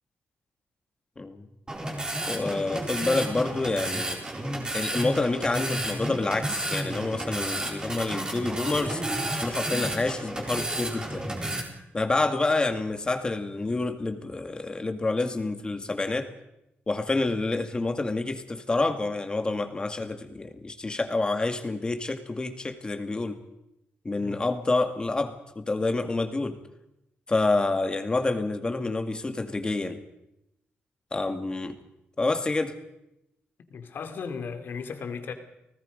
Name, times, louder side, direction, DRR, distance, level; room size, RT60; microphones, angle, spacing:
voice 1, 1.2-1.5 2.3-4.2 4.7-9.0 9.4-11.3 11.9-16.3 16.9-23.4 24.0-26.6 27.3-30.0 31.1-31.8 32.2-32.8, left 3 dB, 20° left, 8 dB, 2.1 m, -28 dB
sound 1, 1.7-11.6, right 1 dB, 20° right, 4.1 m, -32 dB
voice 2, 33.7-35.3, left 5 dB, 60° left, 8 dB, 2.7 m, -36 dB
30.0 x 19.0 x 5.2 m, 0.86 s
wide cardioid pair, 135°, 4 cm